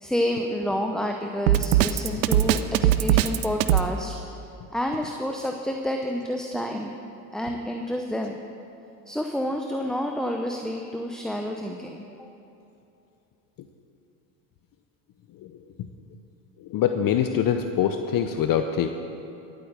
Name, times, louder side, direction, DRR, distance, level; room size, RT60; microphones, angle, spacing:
voice 1, 0.0-4.1 4.7-6.9 7.3-8.4 9.1-12.3, equal, ahead, 3 dB, 0.6 m, -29 dB
Drum kit, 1.5-3.9, right 13 dB, 80° right, 0.7 m, -20 dB
voice 2, 16.7-18.9, left 9 dB, 40° left, 7 dB, 0.7 m, -23 dB
12.5 x 8.9 x 6.6 m, 2.8 s
hypercardioid pair, 85°, 50 cm